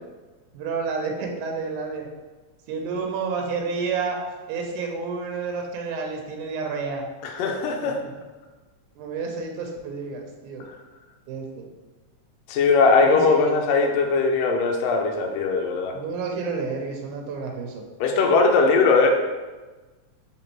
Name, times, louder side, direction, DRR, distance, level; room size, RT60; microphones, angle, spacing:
voice 1, 0.5-2.1 2.7-4.2 4.5-7.1 7.8-8.1 9.0-10.6 11.3-11.7 13.0-13.6 15.9-17.8, right 4 dB, 90° right, 2 dB, 2.1 m, -30 dB
voice 2, 7.2-8.0 12.5-15.9 18.0-19.1, left 4 dB, 80° left, 2 dB, 1.5 m, -20 dB
5.1 x 3.4 x 3.0 m, 1.2 s
omnidirectional pair, 3.4 m